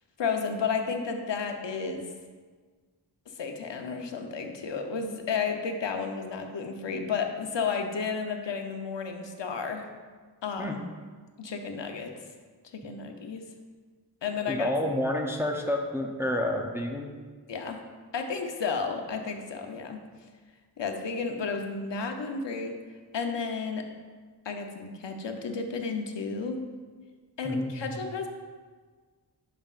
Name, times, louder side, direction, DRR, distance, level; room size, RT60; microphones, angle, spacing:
voice 1, 0.2-2.1 3.4-9.9 10.4-10.8 11.4-12.1 12.7-13.4 14.2-14.7 17.5-17.8 18.1-20.0 20.8-22.7 23.1-23.8 24.4-26.6 27.4-28.3, left 5 dB, 80° left, 4 dB, 0.8 m, -32 dB
voice 2, 14.5-17.1 27.4-27.9, left 1 dB, 5° right, 1 dB, 0.6 m, -29 dB
11.0 x 5.2 x 2.4 m, 1.5 s
wide cardioid pair, 90°, 43 cm